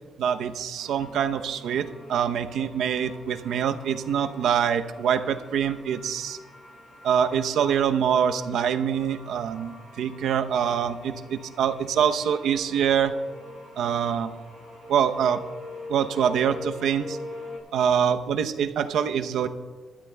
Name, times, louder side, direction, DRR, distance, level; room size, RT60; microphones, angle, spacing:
voice 1, 0.2-6.4 7.0-13.2 13.8-14.4 14.9-15.4 15.9-17.2 17.7-19.5, right 8 dB, 80° right, 8 dB, 0.7 m, -25 dB
sound 1, 0.8-17.6, left 2 dB, 35° left, 4.4 m, -45 dB
21.5 x 13.0 x 2.2 m, 1.4 s
cardioid pair, 150°, 0 cm